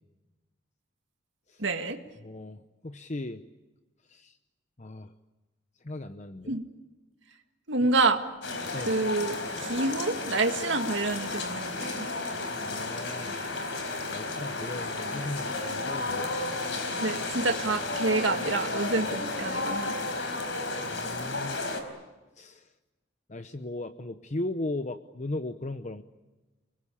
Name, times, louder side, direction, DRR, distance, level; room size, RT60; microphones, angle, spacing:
voice 1, 1.6-2.0 6.5-6.6 7.7-8.2 8.9-12.1 17.0-19.9, right 3 dB, 70° right, 5 dB, 1.9 m, -28 dB
voice 2, 2.2-3.4 4.1-4.4 4.8-5.1 5.8-6.5 8.7-9.0 12.6-13.4 14.1-16.3 20.9-21.6 22.4-22.7 23.3-26.0, left 2 dB, 35° left, 10 dB, 0.8 m, -37 dB
sound 1, 8.4-21.8, left 2 dB, 65° left, 4.4 m, -33 dB
29.5 x 21.0 x 8.5 m, 1.2 s
head